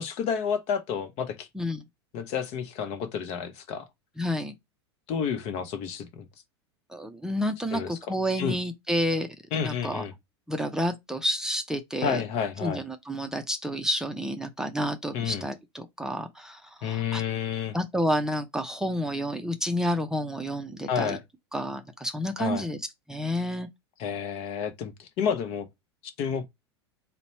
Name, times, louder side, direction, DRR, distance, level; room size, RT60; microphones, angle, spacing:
voice 1, 0.0-1.5 2.1-3.9 5.1-6.3 7.7-7.9 8.4-8.6 9.5-10.1 12.0-12.8 15.1-15.4 16.8-17.8 20.9-21.2 22.4-22.7 24.0-25.7 26.2-26.5, left 7 dB, 45° left, 0.9 m, -30 dB
voice 2, 4.2-4.6 6.9-10.0 10.5-12.2 12.6-17.2 17.7-21.2 21.5-22.8 23.1-23.7, equal, 5° right, 0.6 m, -30 dB
4.1 x 2.2 x 4.1 m
hypercardioid pair, 90°, 14 cm